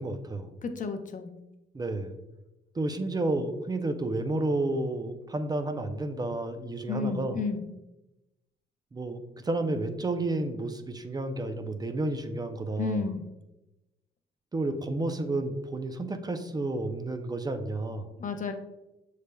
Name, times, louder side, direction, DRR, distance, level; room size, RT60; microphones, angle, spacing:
voice 1, 0.0-0.5 1.7-2.2 2.7-7.4 8.9-13.1 14.5-18.1, right 2 dB, 20° right, 7 dB, 0.4 m, -31 dB
voice 2, 0.6-1.3 6.9-7.6 12.8-13.2 18.2-18.5, left 5 dB, 40° left, 7 dB, 0.6 m, -32 dB
6.6 x 3.2 x 2.2 m, 0.95 s
cardioid pair, 90°, 20 cm